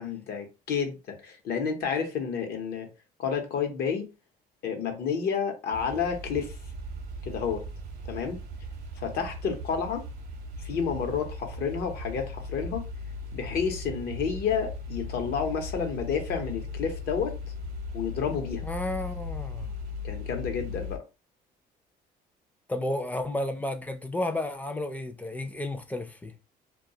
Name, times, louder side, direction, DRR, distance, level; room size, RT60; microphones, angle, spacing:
voice 1, 0.0-2.9 3.2-4.1 4.6-6.5 7.3-7.6 8.1-8.4 9.0-10.0 10.6-12.9 13.3-17.4 17.9-18.6 20.0-21.0, left 6 dB, 70° left, 0.8 m, -30 dB
sound 1, 5.7-21.0, left 2 dB, 65° right, 0.7 m, -38 dB
voice 2, 18.6-19.7 22.7-26.3, left 1 dB, 10° left, 0.4 m, -32 dB
2.2 x 2.2 x 2.7 m
cardioid pair, 110°, 17 cm